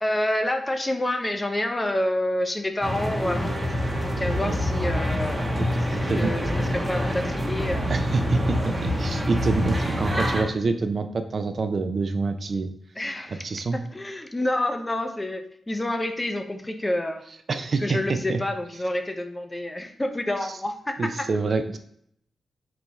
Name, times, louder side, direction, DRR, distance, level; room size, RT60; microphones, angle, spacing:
voice 1, 0.0-3.6 4.0-5.5 6.0-7.9 13.0-13.4 13.7-17.2 17.8-21.0, left 1 dB, 20° left, 6 dB, 0.5 m, -28 dB
sound 1, 2.8-10.4, equal, 20° right, 0.8 m, -26 dB
voice 2, 5.9-6.3 7.9-12.7 13.3-13.8 17.5-18.4 21.0-21.8, right 4 dB, 55° right, 8 dB, 0.3 m, -26 dB
4.1 x 2.3 x 3.0 m, 0.68 s
cardioid pair, 55°, 0 cm